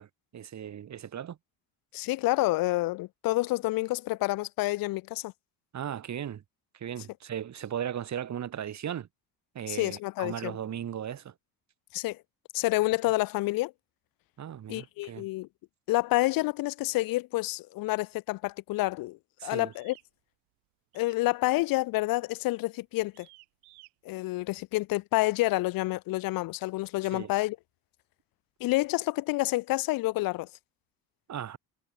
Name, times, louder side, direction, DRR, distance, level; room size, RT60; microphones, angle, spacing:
voice 1, 0.0-1.4 5.7-6.4 6.7-9.1 9.5-11.3 14.4-15.3 19.4-19.7 27.0-27.3 31.3-31.6, right 9 dB, 45° right, 2.0 m, -37 dB
voice 2, 1.9-5.3 9.7-10.6 11.9-12.2 12.5-13.7 14.7-15.5 15.9-19.9 20.9-23.3 24.0-27.6 28.6-30.5, left 19 dB, 60° left, 0.5 m, -28 dB
sound 1, 19.7-20.1 20.9-21.3 21.6-21.9 22.5-22.7 23.1-23.9, right 25 dB, 85° right, 3.8 m, -57 dB
cardioid pair, 95°, 39 cm